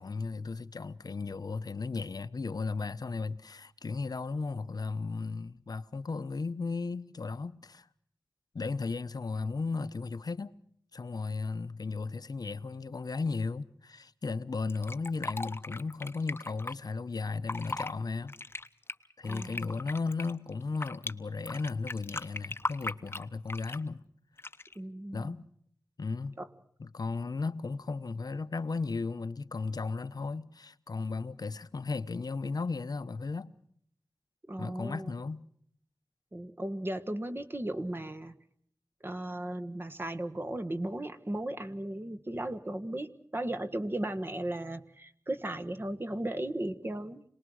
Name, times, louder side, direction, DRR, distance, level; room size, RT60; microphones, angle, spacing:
voice 1, 0.0-7.9 8.5-10.5 10.9-18.4 19.2-24.1 25.1-25.5 26.0-26.4 26.8-33.5 34.6-35.5, left 4 dB, 70° left, 0.9 m, -35 dB
Fill (with liquid), 14.7-16.7 17.3-17.9 18.3-21.1 21.5-23.9 24.4-24.8, left 2 dB, 35° left, 0.9 m, -38 dB
voice 2, 19.2-19.7 24.7-25.3 26.4-26.5 34.5-35.1 36.3-38.3 39.0-47.2, right 1 dB, 30° right, 1.4 m, -36 dB
26.5 x 19.5 x 6.3 m
wide cardioid pair, 65°, 7 cm